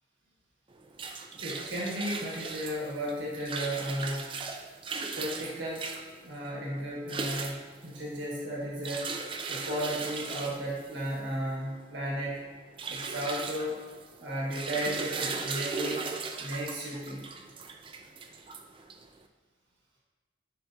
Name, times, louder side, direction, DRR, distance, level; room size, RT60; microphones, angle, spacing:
sound 1, 0.7-19.2, right 4 dB, 25° right, 0.4 m, -38 dB
voice 1, 1.4-4.2 5.2-5.9 6.2-7.6 7.8-9.1 9.5-12.4 12.9-13.8 14.2-16.1 16.4-17.3, equal, 70° right, -4 dB, 1.4 m, -34 dB
10.5 x 4.5 x 2.7 m, 1.4 s
head